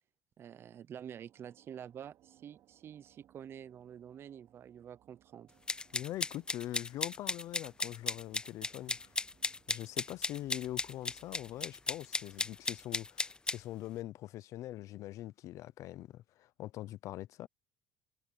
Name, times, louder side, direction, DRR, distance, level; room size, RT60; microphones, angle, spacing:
voice 1, 0.4-5.5, right 9 dB, 40° right, 0.7 m, -48 dB
sound 1, 0.9-13.4, right 13 dB, 60° right, 5.1 m, -69 dB
sound 2, 5.7-13.6, left 3 dB, 15° left, 0.6 m, -36 dB
voice 2, 5.9-9.1 9.7-17.5, left 14 dB, 60° left, 0.7 m, -43 dB
cardioid pair, 115°, 6 cm